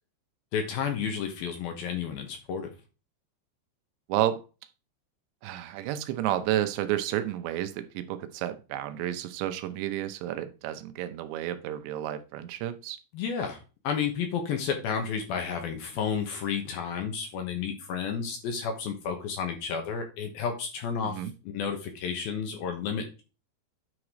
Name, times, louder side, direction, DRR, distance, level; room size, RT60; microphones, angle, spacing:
voice 1, 0.5-2.7 13.1-13.6 13.8-23.2, left 6 dB, 70° left, 2.5 m, -31 dB
voice 2, 4.1-4.4 5.4-13.0 21.0-21.3, right 12 dB, 80° right, 2.8 m, -31 dB
9.7 x 4.8 x 4.9 m
omnidirectional pair, 5.4 m